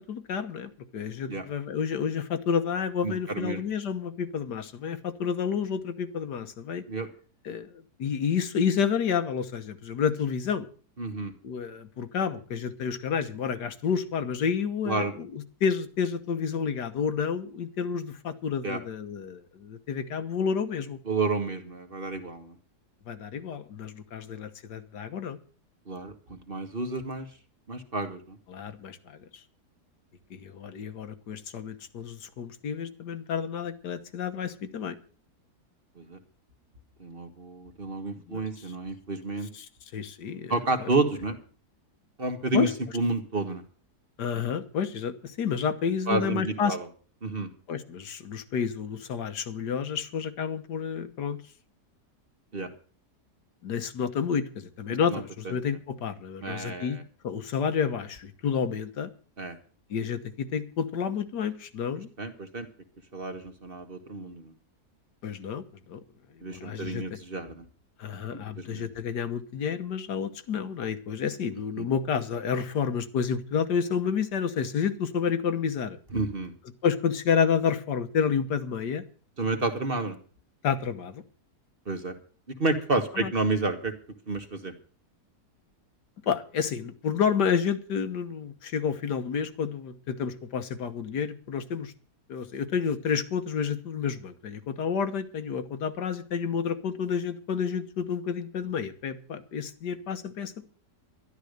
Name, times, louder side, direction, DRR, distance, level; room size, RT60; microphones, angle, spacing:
voice 1, 0.1-6.8 7.4-10.7 11.4-21.0 23.1-25.4 28.5-29.2 30.3-35.0 38.3-38.7 39.5-40.9 42.5-42.7 44.2-46.8 47.7-51.4 53.6-57.0 57.2-59.1 59.9-62.1 65.2-66.0 66.5-67.0 68.0-76.0 76.8-79.0 80.6-81.2 83.1-83.3 86.2-91.9 92.3-100.6, left 6 dB, 80° left, 9 dB, 1.8 m, -30 dB
voice 2, 3.0-3.6 6.9-7.1 11.0-11.3 14.8-15.1 18.6-18.8 21.1-22.5 25.9-27.3 27.7-28.4 36.0-36.2 37.0-39.5 40.5-41.4 42.2-42.7 42.9-43.6 46.1-46.8 47.2-47.5 52.5-52.7 55.1-55.5 56.4-57.0 59.4-59.6 62.2-62.7 63.1-64.5 66.4-67.6 68.3-68.9 71.8-71.9 76.1-76.5 79.4-80.2 81.9-82.1 82.5-83.9 84.3-84.7, right 3 dB, 35° right, 6 dB, 1.6 m, -30 dB
12.0 x 12.0 x 6.5 m, 0.41 s
omnidirectional pair, 1.8 m